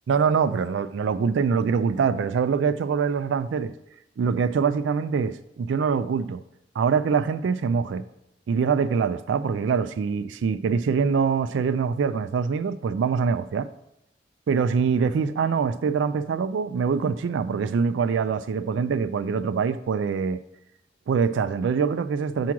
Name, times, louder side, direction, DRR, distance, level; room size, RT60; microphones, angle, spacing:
voice 1, 0.1-3.7 4.2-6.4 6.8-8.0 8.5-13.7 14.5-20.4 21.1-22.5, right 6 dB, 85° right, 0.3 m, -24 dB
6.1 x 4.7 x 5.9 m
head